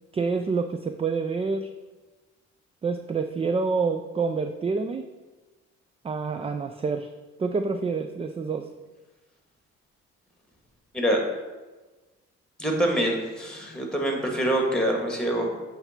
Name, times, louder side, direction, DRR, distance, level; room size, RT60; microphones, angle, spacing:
voice 1, 0.1-1.7 2.8-5.1 6.0-7.1 7.4-8.7, right 4 dB, 20° right, 8 dB, 0.4 m, -27 dB
voice 2, 12.6-15.5, right 1 dB, 5° left, 1 dB, 1.8 m, -25 dB
8.0 x 3.4 x 5.8 m, 1.2 s
cardioid pair, 90°, 30 cm